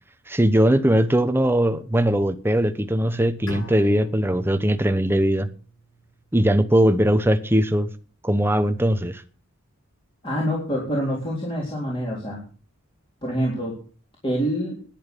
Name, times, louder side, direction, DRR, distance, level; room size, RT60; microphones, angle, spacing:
voice 1, 0.3-5.5 6.3-7.9 8.2-9.2, right 1 dB, 10° right, 0.9 m, -20 dB
Bowed string instrument, 3.5-6.5, equal, 80° left, 7.8 m, -41 dB
voice 2, 10.2-12.4 13.2-13.8 14.2-14.8, equal, 25° left, 3.9 m, -26 dB
11.0 x 10.5 x 6.9 m
head